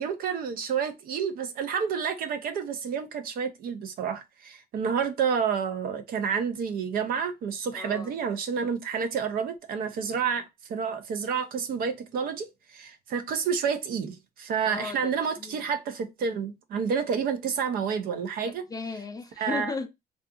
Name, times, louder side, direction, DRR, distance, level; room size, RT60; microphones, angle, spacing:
voice 1, 0.0-10.4 10.7-18.6 19.4-19.7, right 6 dB, 60° right, 0.5 m, -29 dB
voice 2, 7.7-8.1 14.6-15.6 18.4-19.9, left 4 dB, 20° left, 0.4 m, -36 dB
2.7 x 2.4 x 2.3 m
cardioid pair, 110°, 17 cm